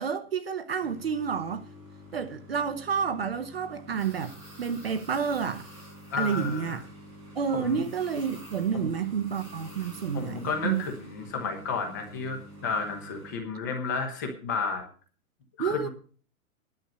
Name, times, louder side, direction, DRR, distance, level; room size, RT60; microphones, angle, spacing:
voice 1, 0.0-1.6 2.1-5.7 6.2-6.8 7.4-10.8 15.6-15.9, right 7 dB, 45° right, 0.8 m, -30 dB
sound 1, 0.8-13.4, equal, 10° right, 4.1 m, -47 dB
voice 2, 6.1-6.8 7.5-7.8 8.7-8.9 10.1-14.8 15.6-15.9, left 5 dB, 15° left, 1.0 m, -32 dB
10.5 x 6.8 x 7.9 m
hypercardioid pair, 180°, 43 cm